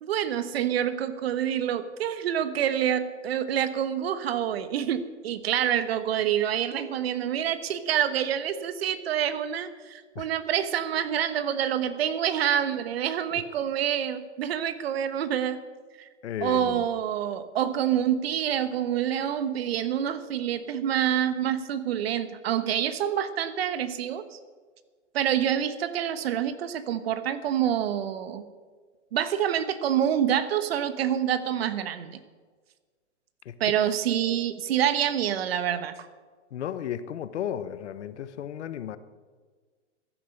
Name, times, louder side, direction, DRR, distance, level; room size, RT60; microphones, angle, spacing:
voice 1, 0.0-15.6 16.4-24.4 25.1-28.4 29.1-32.2 33.6-35.9, right 10 dB, 55° right, 13 dB, 1.2 m, -27 dB
voice 2, 16.2-16.8 33.4-33.6 36.5-39.0, left 10 dB, 70° left, 14 dB, 1.1 m, -34 dB
15.0 x 10.5 x 6.6 m, 1.5 s
hypercardioid pair, 145°, 36 cm